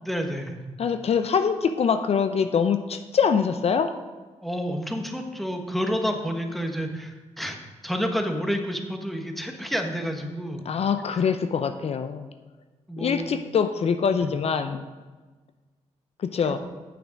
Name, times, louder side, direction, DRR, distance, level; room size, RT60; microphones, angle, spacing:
voice 1, 0.0-0.6 4.4-7.6 7.8-10.6 11.1-11.2 12.9-13.4 14.2-14.4 16.5-16.6, equal, ahead, 4 dB, 1.2 m, -29 dB
voice 2, 0.8-3.9 10.7-12.3 13.0-14.9 16.3-16.6, left 6 dB, 60° left, 9 dB, 0.5 m, -24 dB
8.6 x 6.9 x 5.2 m, 1.3 s
cardioid pair, 85°, 12 cm